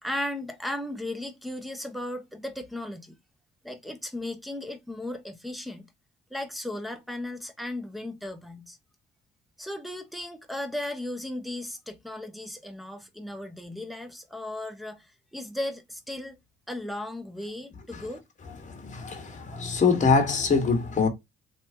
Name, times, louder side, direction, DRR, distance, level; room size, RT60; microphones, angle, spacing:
voice 1, 0.0-3.2 3.6-5.9 6.3-8.8 9.6-16.4 16.7-18.2, left 1 dB, ahead, 0.9 m, -36 dB
voice 2, 18.6-21.1, left 4 dB, 35° left, 1.5 m, -24 dB
3.4 x 3.0 x 2.8 m
cardioid pair, 90°, 20 cm